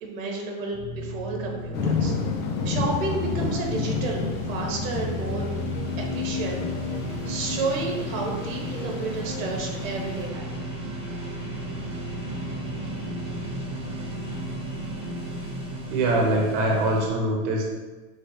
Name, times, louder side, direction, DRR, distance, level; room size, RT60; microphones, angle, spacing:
voice 1, 0.0-2.1 2.6-5.5 6.0-6.6 7.2-10.6, right 3 dB, 80° right, 0 dB, 1.2 m, -31 dB
sound 1, 0.7-17.1, right 1 dB, 15° right, 0.8 m, -34 dB
sound 2, 1.7-10.3, left 5 dB, 90° left, 1.0 m, -32 dB
sound 3, 2.2-9.5, left 5 dB, 40° left, 0.5 m, -35 dB
voice 2, 15.9-17.7, right 1 dB, 50° right, -1 dB, 1.0 m, -23 dB
5.2 x 3.7 x 2.7 m, 1.2 s
supercardioid pair, 150°, 40 cm